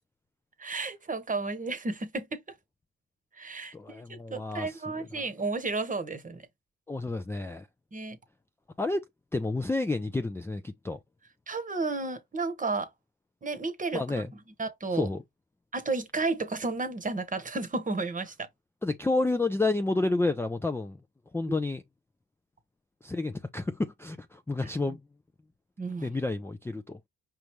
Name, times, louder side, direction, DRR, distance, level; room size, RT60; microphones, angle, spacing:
voice 1, 0.6-2.4 3.4-6.5 7.9-8.2 11.5-12.9 13.4-14.0 14.6-15.1 15.7-18.5 25.8-26.1, right 3 dB, 25° right, 1.1 m, -32 dB
voice 2, 3.7-5.1 6.9-7.7 8.8-9.0 9.3-11.0 13.9-14.3 14.9-15.2 18.8-21.0 21.3-21.8 23.0-25.0 26.0-27.0, left 2 dB, 10° left, 0.4 m, -30 dB
5.1 x 3.3 x 3.0 m
cardioid pair, 90°, 30 cm